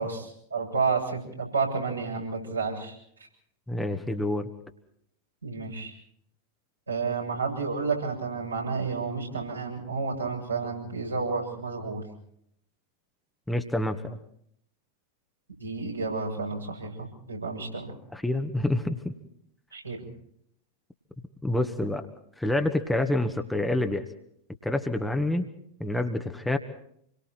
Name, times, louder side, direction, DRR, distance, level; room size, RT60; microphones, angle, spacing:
voice 1, 0.0-2.9 5.4-5.9 6.9-12.0 15.6-17.9 19.7-20.1, right 4 dB, 80° right, -1 dB, 7.2 m, -31 dB
voice 2, 3.7-4.5 13.5-14.2 18.1-19.1 21.4-22.1 22.4-24.0 24.6-25.5 25.8-26.6, left 1 dB, 5° left, 6 dB, 1.8 m, -27 dB
27.5 x 23.0 x 4.5 m, 0.69 s
figure-of-eight pair, 90°, 0 cm